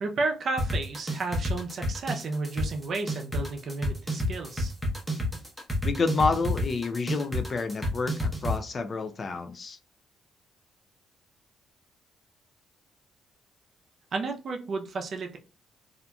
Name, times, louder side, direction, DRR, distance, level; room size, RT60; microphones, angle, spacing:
voice 1, 0.0-4.7 14.1-15.4, right 3 dB, 55° right, 0.5 m, -32 dB
sound 1, 0.6-8.5, equal, 5° right, 0.7 m, -28 dB
voice 2, 5.8-9.8, left 4 dB, 40° left, 0.4 m, -29 dB
2.8 x 2.4 x 2.2 m
cardioid pair, 90°, 0 cm